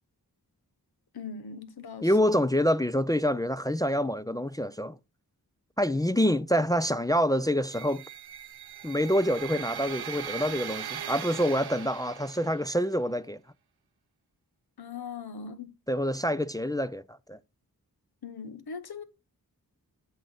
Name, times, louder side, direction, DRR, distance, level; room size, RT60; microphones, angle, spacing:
voice 1, 1.1-2.1 14.8-15.7 18.2-19.0, left 5 dB, 75° left, 1.0 m, -40 dB
voice 2, 2.0-5.0 5.8-8.0 8.8-13.4 15.9-17.4, equal, 10° left, 0.4 m, -26 dB
sound 1, 7.7-12.7, right 8 dB, 85° right, 0.7 m, -39 dB
8.1 x 6.2 x 4.2 m
cardioid pair, 45°, 37 cm